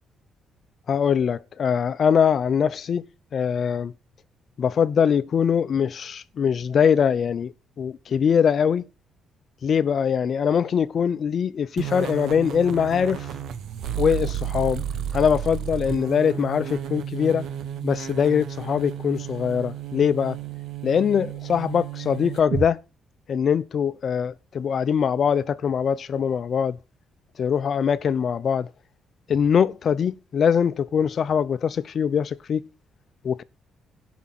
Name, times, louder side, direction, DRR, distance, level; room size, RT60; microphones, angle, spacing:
voice 1, 0.9-3.0 3.3-3.9 4.6-8.8 9.6-13.3 14.0-14.8 15.1-17.5 17.8-20.4 20.8-22.8 23.3-26.8 27.4-28.7 29.3-32.7 33.2-33.4, left 7 dB, 55° left, 0.7 m, -22 dB
sound 1, 11.8-22.7, right 9 dB, 75° right, 1.0 m, -32 dB
16.5 x 6.3 x 4.2 m
cardioid pair, 90°, 0 cm